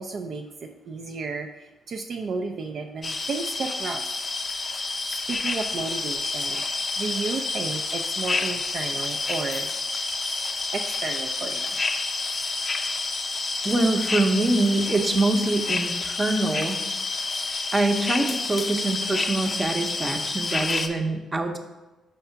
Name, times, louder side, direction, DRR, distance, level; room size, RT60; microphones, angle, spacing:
voice 1, 0.0-4.0 4.6-5.0 5.3-9.7 10.7-11.7, right 4 dB, 55° right, 4 dB, 0.4 m, -33 dB
sound 1, 3.0-20.9, left 3 dB, 30° left, 0.5 m, -29 dB
voice 2, 13.6-16.8 17.7-21.6, right 2 dB, 25° right, 4 dB, 0.7 m, -24 dB
5.7 x 3.5 x 5.6 m, 1.1 s
cardioid pair, 90°, 0 cm